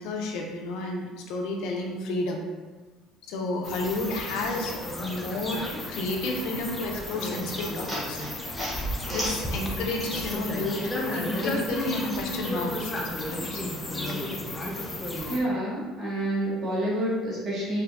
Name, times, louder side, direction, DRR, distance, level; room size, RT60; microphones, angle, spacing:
voice 1, 0.0-2.4 3.3-8.2 9.1-13.6, left 2 dB, 75° left, 1 dB, 0.4 m, -31 dB
sound 1, 3.6-15.4, left 1 dB, 15° left, 0.4 m, -33 dB
sound 2, 6.9-10.5 10.8-12.2, equal, 10° right, 1.1 m, -37 dB
voice 2, 15.3-17.8, right 1 dB, 35° right, -6 dB, 1.0 m, -28 dB
3.3 x 2.6 x 2.4 m, 1.3 s
cardioid pair, 165°, 0 cm